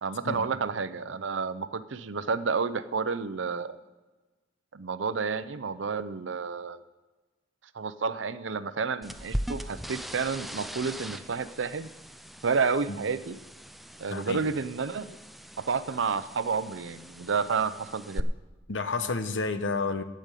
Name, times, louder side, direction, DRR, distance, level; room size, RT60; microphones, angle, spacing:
voice 1, 0.0-3.8 4.7-6.8 7.7-11.9 12.4-13.4 14.0-15.2 15.6-18.3, right 5 dB, 80° right, 14 dB, 0.6 m, -30 dB
sound 1, 9.0-18.2, equal, ahead, 0.4 m, -40 dB
voice 2, 14.1-14.4 18.7-20.0, left 4 dB, 80° left, 10 dB, 0.9 m, -30 dB
15.0 x 5.2 x 9.0 m, 1.2 s
head